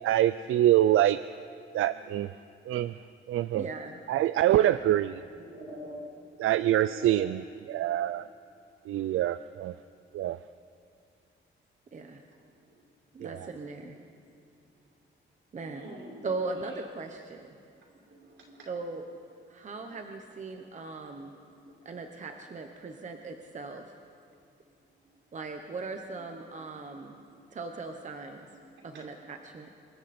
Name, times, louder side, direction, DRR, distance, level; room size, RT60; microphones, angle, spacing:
voice 1, 0.0-1.2 1.7-2.3 2.7-2.9 3.3-3.7 4.1-5.2 6.4-8.3 8.9-9.7 10.1-10.4 13.2-13.5, right 13 dB, 90° right, 15 dB, 0.4 m, -25 dB
voice 2, 3.5-4.0 4.5-4.8 11.9-12.2 13.1-14.0 15.5-15.9 16.2-17.5 18.7-19.0 19.5-21.3 21.8-23.8 25.3-27.1 27.5-28.4 28.8-29.7, right 3 dB, 35° right, 4 dB, 1.0 m, -39 dB
voice 3, 5.3-6.0 6.7-7.3 13.2-13.8 15.6-16.2 18.1-18.7 19.9-20.1 21.2-21.3 21.6-21.8 26.6-26.7 27.0-27.1 28.8-29.1, right 1 dB, 70° right, -2 dB, 5.4 m, -46 dB
27.0 x 23.5 x 4.3 m, 2.4 s
wide cardioid pair, 155°, 21 cm